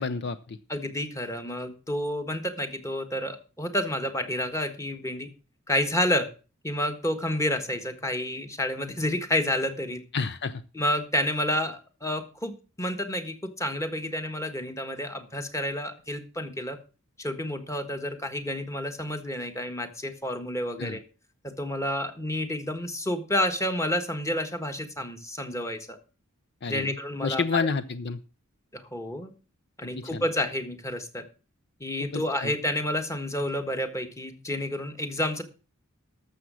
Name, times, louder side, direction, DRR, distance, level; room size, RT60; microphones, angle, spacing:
voice 1, 0.0-0.6 10.1-10.6 20.8-21.0 26.6-26.9 27.2-28.2 30.1-30.2 32.1-32.5, left 4 dB, 55° left, 13 dB, 0.6 m, -29 dB
voice 2, 0.7-5.3 5.7-6.3 6.6-10.0 10.7-16.8 17.2-21.0 21.4-26.0 26.7-27.7 28.7-29.3 29.8-31.2 31.8-35.4, left 1 dB, 15° left, 7 dB, 1.5 m, -30 dB
12.0 x 7.2 x 6.3 m, 0.35 s
head